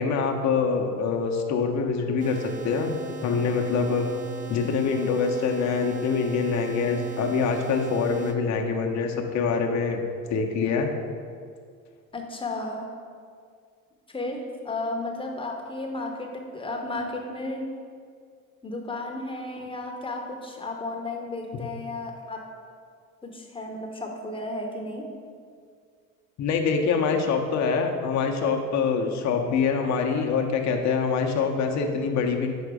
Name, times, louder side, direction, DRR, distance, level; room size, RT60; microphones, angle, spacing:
voice 1, 0.0-4.1 4.5-10.0 10.3-10.9 26.4-32.5, left 5 dB, 45° left, 3 dB, 0.8 m, -25 dB
sound 1, 2.2-8.4, right 4 dB, 20° right, 0.5 m, -39 dB
voice 2, 12.1-12.9 14.1-17.6 18.6-22.4 23.2-25.0, left 2 dB, 15° left, 1 dB, 0.9 m, -33 dB
5.1 x 4.3 x 4.8 m, 2.1 s
hypercardioid pair, 75°, 40 cm